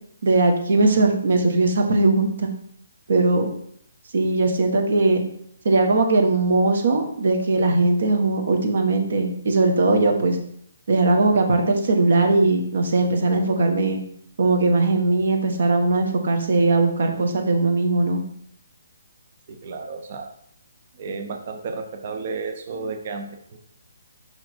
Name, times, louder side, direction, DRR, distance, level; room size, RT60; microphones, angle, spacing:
voice 1, 0.2-2.5 3.1-3.5 4.1-5.2 5.6-10.4 10.9-14.0 14.4-18.2, right 2 dB, 50° right, 4 dB, 1.3 m, -19 dB
voice 2, 19.5-20.3 21.0-23.6, right 4 dB, 30° right, 5 dB, 0.7 m, -32 dB
6.1 x 4.9 x 4.5 m, 0.67 s
hypercardioid pair, 180°, 0 cm